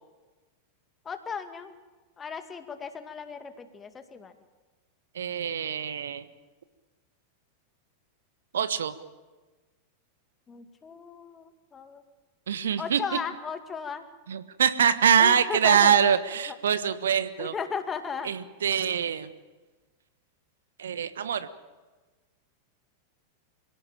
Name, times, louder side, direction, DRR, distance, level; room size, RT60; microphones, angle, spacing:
voice 1, 1.0-1.7 2.2-4.3 10.5-12.0 12.8-14.0 15.2-15.9 16.5-16.6 17.4-18.3, left 6 dB, 20° left, 8 dB, 2.3 m, -36 dB
voice 2, 5.1-6.2 8.5-8.9 12.5-13.0 14.3-17.5 18.2-19.3 20.8-21.5, right 8 dB, 65° right, 12 dB, 1.3 m, -24 dB
26.5 x 17.5 x 9.1 m, 1.3 s
figure-of-eight pair, 90°, 0 cm